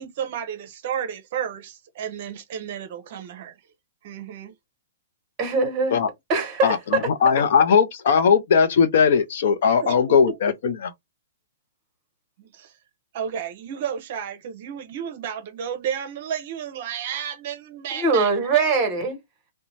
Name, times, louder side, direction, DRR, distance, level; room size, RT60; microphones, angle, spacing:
voice 1, 0.0-3.5 4.0-4.5 9.8-10.0 10.3-10.4 12.4-12.7 13.1-18.3, right 8 dB, 45° right, 0.7 m, -32 dB
voice 2, 5.4-6.0 6.3-7.1 17.9-19.2, right 4 dB, 20° right, 1.2 m, -22 dB
voice 3, 6.6-10.9, left 6 dB, 55° left, 0.6 m, -19 dB
2.6 x 2.1 x 3.1 m
hypercardioid pair, 165°, 0 cm